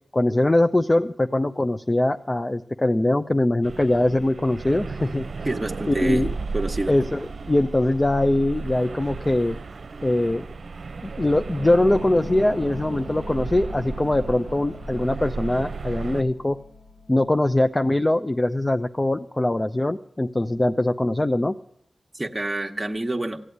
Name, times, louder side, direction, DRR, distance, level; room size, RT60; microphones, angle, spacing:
voice 1, 0.1-5.5 5.9-6.3 6.9-9.6 10.0-10.5 11.0-16.6 17.1-21.5, left 1 dB, 25° left, 9 dB, 0.6 m, -22 dB
sound 1, 3.6-16.2, right 4 dB, 70° right, 0.7 m, -34 dB
voice 2, 5.4-6.3 6.5-7.0 22.1-23.4, right 2 dB, 20° right, 1 dB, 1.2 m, -27 dB
sound 2, 11.8-17.9, left 3 dB, 90° left, 0.8 m, -43 dB
16.0 x 8.3 x 9.4 m, 0.69 s
cardioid pair, 55°, 0 cm